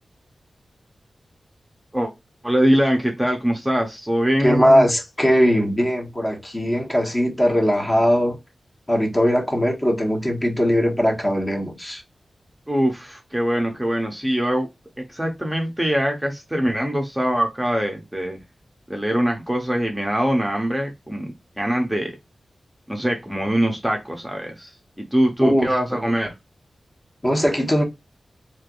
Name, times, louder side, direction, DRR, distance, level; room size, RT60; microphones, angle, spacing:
voice 1, 2.4-4.9 12.7-14.7 15.1-18.4 18.9-22.1 22.9-24.7 25.0-26.3, equal, 5° right, 0.7 m, -23 dB
voice 2, 4.4-8.4 8.9-12.0 25.4-25.8 27.2-27.8, equal, 25° left, 1.1 m, -20 dB
3.3 x 2.9 x 2.5 m
wide cardioid pair, 70°, 0 cm